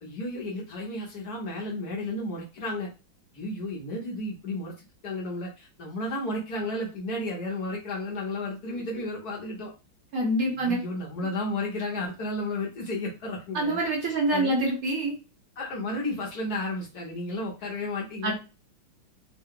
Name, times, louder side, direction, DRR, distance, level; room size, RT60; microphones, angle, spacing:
voice 1, 0.0-2.9 3.3-4.7 5.0-9.7 10.5-14.5 15.6-18.3, left 1 dB, 60° left, -2 dB, 1.3 m, -33 dB
voice 2, 10.1-10.8 13.5-15.1 18.2-18.3, right 1 dB, 50° right, -1 dB, 1.3 m, -25 dB
3.7 x 2.2 x 3.6 m, 0.30 s
omnidirectional pair, 2.2 m